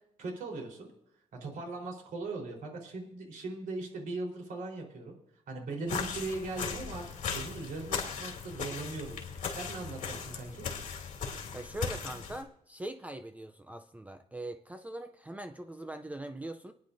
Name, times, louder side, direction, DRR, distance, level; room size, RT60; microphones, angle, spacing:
voice 1, 0.2-0.9 1.4-5.1 5.5-7.0 7.3-10.7, right 3 dB, 85° right, 0 dB, 3.9 m, -39 dB
sound 1, 5.9-12.4, left 6 dB, 70° left, 2.6 m, -38 dB
voice 2, 11.5-16.7, right 1 dB, 10° right, 8 dB, 0.5 m, -41 dB
25.5 x 10.0 x 2.6 m, 0.80 s
wide cardioid pair, 165°, 14 cm